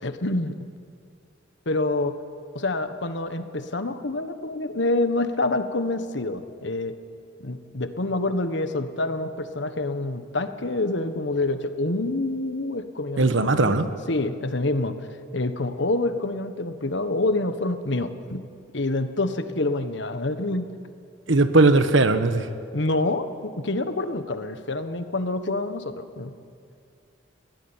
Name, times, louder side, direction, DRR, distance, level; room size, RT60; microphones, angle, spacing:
voice 1, 0.0-0.5 1.6-2.2 2.5-6.9 7.4-13.8 14.1-15.0 15.3-18.4 18.7-20.7 22.7-26.3, left 2 dB, 70° left, 9 dB, 1.4 m, -27 dB
voice 2, 13.2-13.9 21.3-22.5, right 3 dB, 80° right, 10 dB, 1.3 m, -18 dB
22.0 x 17.0 x 9.0 m, 2.3 s
head